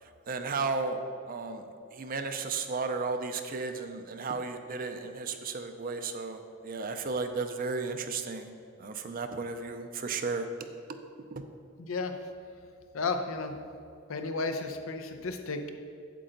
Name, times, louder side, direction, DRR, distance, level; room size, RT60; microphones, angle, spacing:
voice 1, 0.0-8.5 8.8-10.5 11.3-11.4, right 4 dB, 45° right, 7 dB, 0.5 m, -34 dB
voice 2, 11.8-12.2 12.9-13.6 14.1-15.7, left 3 dB, 80° left, 7 dB, 0.7 m, -33 dB
8.4 x 7.6 x 3.9 m, 2.5 s
head